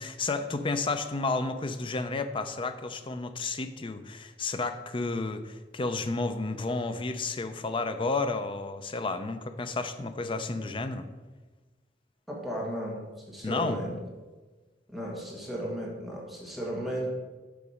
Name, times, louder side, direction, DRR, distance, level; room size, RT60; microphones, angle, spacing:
voice 1, 0.0-11.1 13.4-13.8, left 3 dB, 30° left, 9 dB, 0.5 m, -31 dB
voice 2, 12.3-13.9 14.9-17.1, equal, ahead, -4 dB, 1.5 m, -35 dB
6.9 x 4.9 x 5.0 m, 1.3 s
head